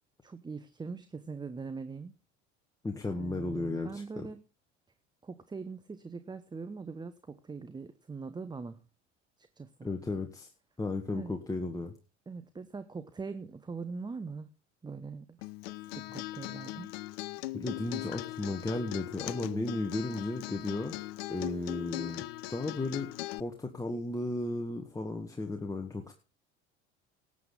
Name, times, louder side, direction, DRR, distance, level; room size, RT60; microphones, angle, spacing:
voice 1, 0.2-2.2 3.1-4.4 5.2-8.8 9.4-9.7 11.1-11.4 12.3-14.5 14.8-15.4 16.0-17.0, right 4 dB, 10° right, 1.0 m, -42 dB
voice 2, 2.8-4.3 9.8-10.5 10.8-11.9 17.5-26.1, left 2 dB, 10° left, 1.7 m, -35 dB
Acoustic guitar, 15.4-23.4, left 18 dB, 55° left, 0.7 m, -40 dB
18.5 x 8.5 x 3.8 m
figure-of-eight pair, 70°, 36 cm